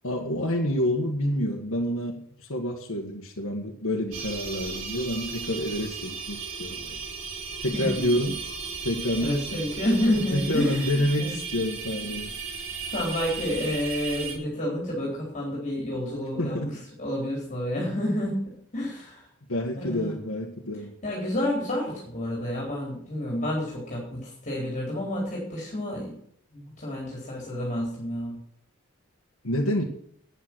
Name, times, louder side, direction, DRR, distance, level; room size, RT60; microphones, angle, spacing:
voice 1, 0.0-7.0 7.6-8.4 8.8-9.6 10.3-12.4 16.4-16.8 19.5-20.9 29.4-29.8, left 1 dB, 85° left, -1 dB, 1.7 m, -28 dB
sound 1, 4.1-14.4, right 5 dB, 70° right, 3.2 m, -36 dB
voice 2, 7.7-8.2 9.2-11.4 12.9-19.2 19.8-20.1 21.0-26.1 26.5-28.4, left 1 dB, 35° left, -2 dB, 4.1 m, -29 dB
9.9 x 9.0 x 6.2 m, 0.65 s
head